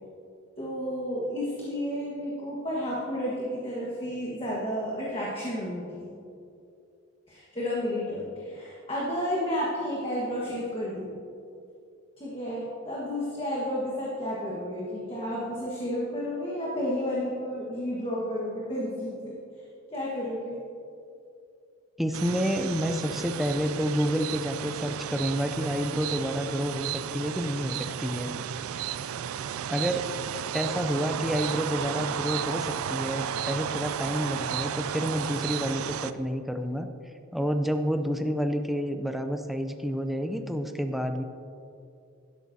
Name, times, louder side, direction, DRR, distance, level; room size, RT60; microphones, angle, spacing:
voice 1, 0.6-6.1 7.3-11.2 12.2-19.3 19.9-20.6 29.4-29.5, equal, 25° left, -6 dB, 1.5 m, -31 dB
voice 2, 22.0-28.6 29.7-30.1 30.5-36.9 37.3-41.2, equal, ahead, 6 dB, 0.5 m, -29 dB
sound 1, 22.1-36.1, right 9 dB, 90° right, 0.4 m, -33 dB
12.5 x 11.0 x 2.8 m, 2.5 s
head